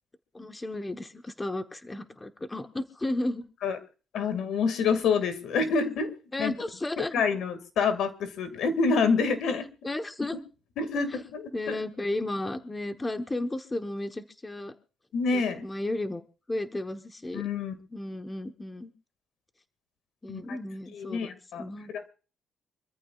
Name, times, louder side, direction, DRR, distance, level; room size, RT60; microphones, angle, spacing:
voice 1, 0.3-3.5 6.3-7.2 9.8-10.3 11.1-11.2 11.5-14.7 15.3-16.2 16.5-17.5 17.9-18.9 20.2-21.9, left 1 dB, 20° left, 7 dB, 1.1 m, -34 dB
voice 2, 4.1-6.1 6.4-6.5 7.1-9.7 10.8-11.8 15.1-15.6 17.3-17.7 20.3-20.6 20.9-21.6 21.9-22.1, left 5 dB, 75° left, 11 dB, 2.1 m, -27 dB
25.5 x 14.0 x 2.4 m, 0.36 s
cardioid pair, 90°, 0 cm